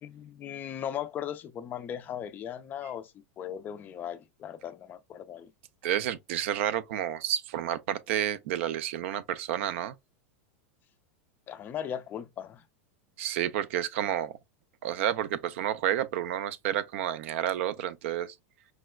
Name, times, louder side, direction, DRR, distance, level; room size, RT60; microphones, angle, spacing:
voice 1, 0.0-5.5 11.5-12.6, left 9 dB, 25° left, 0.3 m, -38 dB
voice 2, 5.8-10.0 13.2-14.3 14.8-18.3, right 11 dB, 65° right, 0.4 m, -30 dB
4.8 x 2.1 x 2.2 m
supercardioid pair, 145°, 7 cm